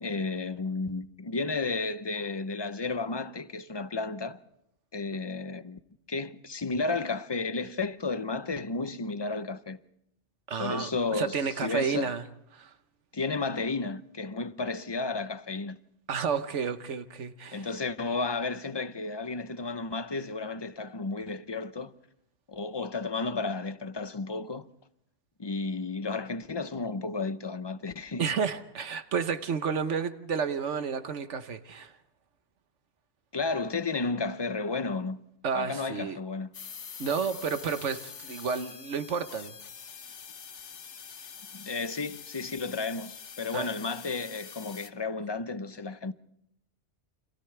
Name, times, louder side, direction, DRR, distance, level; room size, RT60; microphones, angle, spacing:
voice 1, 0.0-4.4 4.9-5.8 6.1-9.8 10.6-12.1 13.1-15.8 17.5-21.9 22.5-24.7 25.4-28.3 33.3-35.2 35.5-36.5 41.5-46.1, left 3 dB, 25° left, 0.7 m, -33 dB
voice 2, 10.5-12.2 12.5-12.7 16.1-17.7 28.2-31.9 35.4-36.2 37.0-39.5 43.5-43.7, right 6 dB, 85° right, 1.4 m, -31 dB
sound 1, 36.5-44.9, left 7 dB, 80° left, 1.4 m, -45 dB
29.5 x 27.0 x 3.4 m
omnidirectional pair, 1.2 m